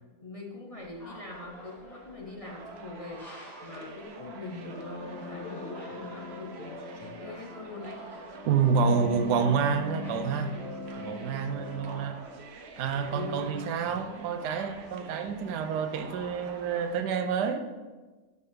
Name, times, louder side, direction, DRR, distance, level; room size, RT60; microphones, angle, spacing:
voice 1, 0.2-8.0 13.1-14.4, left 2 dB, 35° left, -1 dB, 0.5 m, -43 dB
sound 1, 0.7-17.1, left 1 dB, ahead, 2.4 m, -51 dB
sound 2, 2.4-17.0, right 3 dB, 50° right, 0.9 m, -47 dB
sound 3, 4.1-12.0, left 1 dB, 70° left, 2.8 m, -42 dB
voice 2, 8.4-10.5 11.0-12.2 12.8-17.6, right 6 dB, 85° right, 9 dB, 1.3 m, -28 dB
5.6 x 5.4 x 6.4 m, 1.3 s
omnidirectional pair, 1.7 m